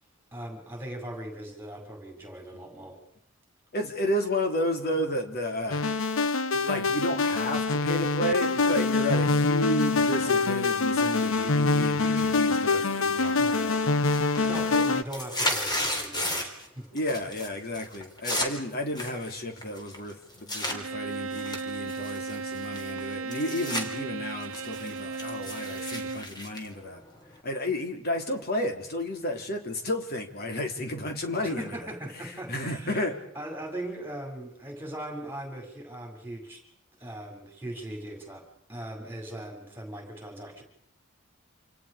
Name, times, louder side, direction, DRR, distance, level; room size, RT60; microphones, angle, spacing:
voice 1, 0.3-3.0 11.2-11.3 13.4-16.9 31.4-33.0 33.3-36.6 37.0-40.6, right 1 dB, 10° right, 2 dB, 6.4 m, -40 dB
voice 2, 3.7-5.9 6.5-13.4 14.4-14.6 16.9-27.0 27.4-31.8 32.5-33.2, left 1 dB, 50° left, 4 dB, 3.5 m, -32 dB
sound 1, 5.7-15.0, left 3 dB, 75° left, 0.9 m, -25 dB
sound 2, 13.2-13.6 14.0-16.7 17.0-17.5 17.7-20.8 21.3-23.9 24.2-27.4, left 1 dB, 20° left, 3.8 m, -34 dB
Bowed string instrument, 20.7-26.3, right 4 dB, 85° right, 1.0 m, -36 dB
28.5 x 28.0 x 5.1 m, 0.69 s
head